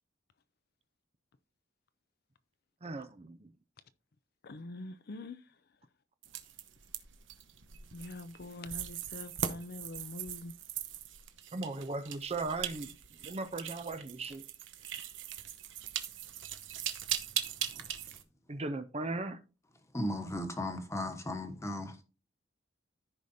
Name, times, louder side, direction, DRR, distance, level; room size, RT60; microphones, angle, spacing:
voice 1, 2.8-3.5 11.5-12.9 13.2-14.4 18.5-19.4, right 3 dB, 30° right, 0.6 m, -37 dB
voice 2, 4.4-5.6 7.9-10.5, left 2 dB, 55° left, 0.5 m, -44 dB
sound 1, 6.2-18.2, right 10 dB, 70° right, 0.9 m, -40 dB
voice 3, 19.9-22.0, left 1 dB, 15° left, 1.2 m, -36 dB
14.0 x 5.0 x 2.7 m
head